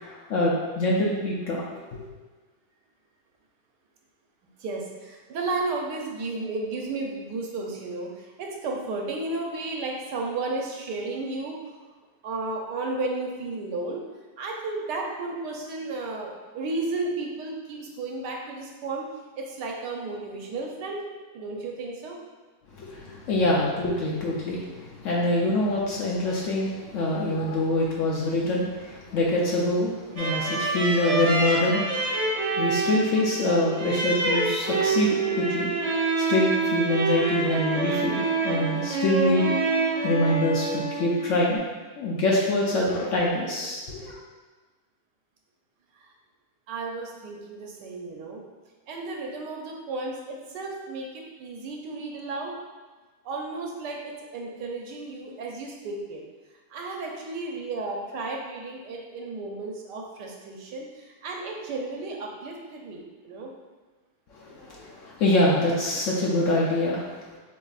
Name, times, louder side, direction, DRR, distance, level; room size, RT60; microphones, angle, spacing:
voice 1, 0.0-1.6 22.7-32.2 32.5-35.7 36.2-39.6 40.0-41.6 42.0-44.2 64.3-67.4, left 1 dB, 65° left, -3 dB, 0.8 m, -25 dB
voice 2, 4.6-11.6 12.2-14.0 14.4-19.1 19.4-21.0 21.3-22.2 46.7-48.4 48.9-52.5 53.2-56.2 56.7-63.5, right 3 dB, 90° right, 0 dB, 1.3 m, -33 dB
sound 1, 30.2-41.6, right 3 dB, 60° right, 0.4 m, -26 dB
7.1 x 2.6 x 2.4 m, 1.3 s
omnidirectional pair, 1.8 m